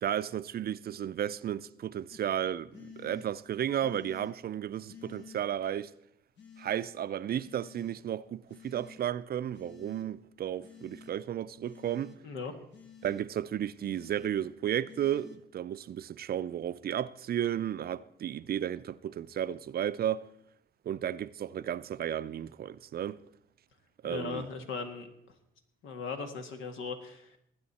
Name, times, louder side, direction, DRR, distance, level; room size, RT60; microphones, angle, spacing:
voice 1, 0.0-5.9 6.6-12.2 13.0-20.3 20.9-23.2 24.0-24.5, right 10 dB, 50° right, 0.5 m, -33 dB
sound 1, 2.1-2.2 2.7-3.3 3.8-4.3 4.9-5.4 6.4-6.9 7.4-8.0 8.5-9.0 9.5-10.1 10.6-11.1 11.7-12.2 12.7-13.2 13.8-14.3 14.9-15.4, left 6 dB, 65° left, 1.5 m, -51 dB
voice 2, 12.2-12.5 24.1-25.1 25.8-27.4, left 5 dB, 85° left, 1.7 m, -38 dB
19.5 x 8.7 x 4.2 m
cardioid pair, 90°, 20 cm